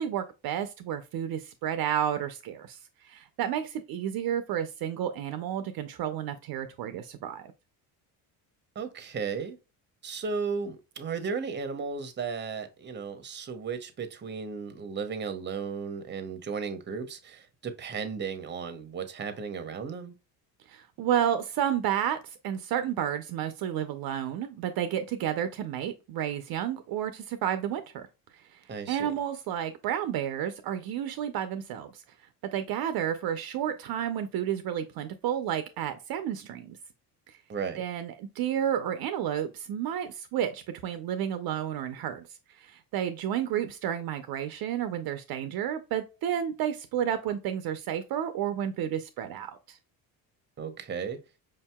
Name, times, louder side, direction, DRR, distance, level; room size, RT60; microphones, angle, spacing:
voice 1, 0.0-2.8 3.0-7.5 20.7-28.0 28.5-28.6 28.9-32.0 32.5-36.8 37.8-42.2 42.6-49.8, right 10 dB, 60° right, 0.6 m, -31 dB
voice 2, 8.7-9.6 10.0-20.1 28.7-29.1 37.5-37.8 50.6-51.2, right 5 dB, 25° right, 0.8 m, -35 dB
5.2 x 2.7 x 2.2 m
cardioid pair, 100°, 42 cm